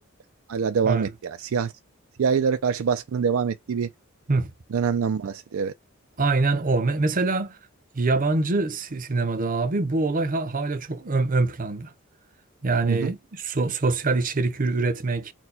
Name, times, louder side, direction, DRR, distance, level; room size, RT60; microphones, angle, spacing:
voice 1, 0.5-1.7 2.2-3.9 4.7-5.7 12.9-13.1, right 6 dB, 75° right, 0.4 m, -25 dB
voice 2, 6.2-7.6 7.9-11.9 12.6-15.3, right 3 dB, 40° right, 0.7 m, -24 dB
4.4 x 2.2 x 4.1 m
head